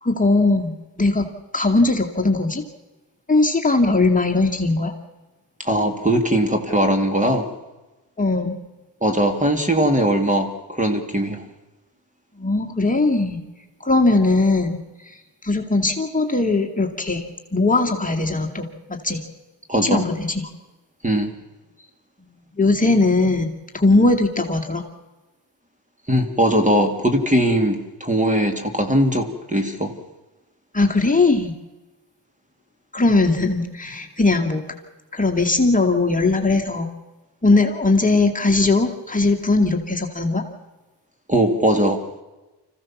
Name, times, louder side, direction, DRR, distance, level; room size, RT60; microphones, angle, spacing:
voice 1, 0.0-2.6 3.3-4.9 8.2-8.6 12.4-13.4 13.8-14.8 15.1-15.2 15.4-19.2 19.8-20.5 22.6-24.8 30.7-31.5 32.9-34.6 35.1-36.9 37.4-40.4, left 3 dB, 20° left, 1 dB, 2.2 m, -19 dB
voice 2, 5.6-7.5 9.0-11.4 19.7-20.0 21.0-21.3 26.1-29.9 41.3-42.0, right 1 dB, 15° right, 6 dB, 2.5 m, -20 dB
26.0 x 15.5 x 7.3 m, 1.1 s
cardioid pair, 105°, 43 cm